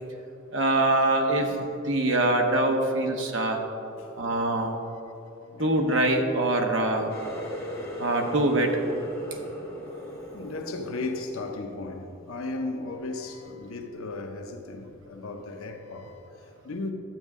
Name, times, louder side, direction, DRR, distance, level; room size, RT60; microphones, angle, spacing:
voice 1, 0.5-3.6 4.2-4.8 5.6-7.1 8.0-8.7, right 2 dB, 60° right, 1.0 m, -24 dB
voice 2, 1.4-1.7 3.9-4.1 5.4-5.9 7.7-8.0 10.3-16.9, left 2 dB, 85° left, 0.8 m, -36 dB
Water tap faucet, 7.1-12.6 13.0-13.4 13.9-14.2 14.9-15.0, equal, 15° left, 1.7 m, -38 dB
12.0 x 8.1 x 3.6 m
head